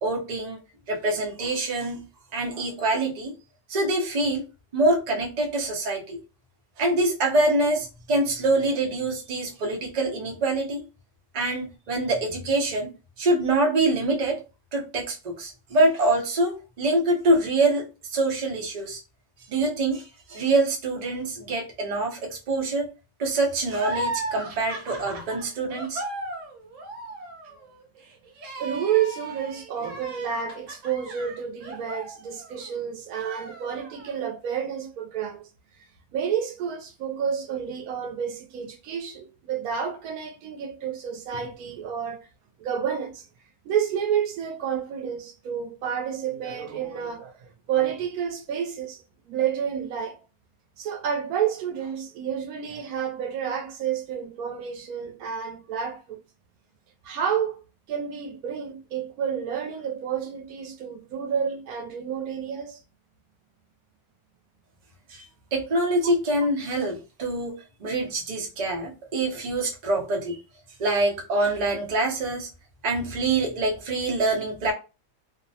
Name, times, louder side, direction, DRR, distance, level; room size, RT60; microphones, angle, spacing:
voice 1, 0.0-0.6 0.9-2.0 2.3-3.3 3.7-4.5 4.7-6.2 6.8-10.8 11.3-12.9 13.2-14.4 14.7-19.0 19.5-22.9 23.2-26.0 65.1-65.2 65.5-67.5 67.8-70.4 70.8-72.5 72.8-74.7, right 2 dB, 40° right, 0.7 m, -25 dB
sound 1, 23.7-32.8 33.1-34.2, right 2 dB, 65° right, 1.0 m, -37 dB
voice 2, 28.6-35.5 36.1-42.3 42.6-43.2 43.6-50.2 50.8-56.2 57.0-57.6 57.9-62.8, right 8 dB, 90° right, 1.1 m, -30 dB
2.7 x 2.1 x 2.7 m
omnidirectional pair, 1.5 m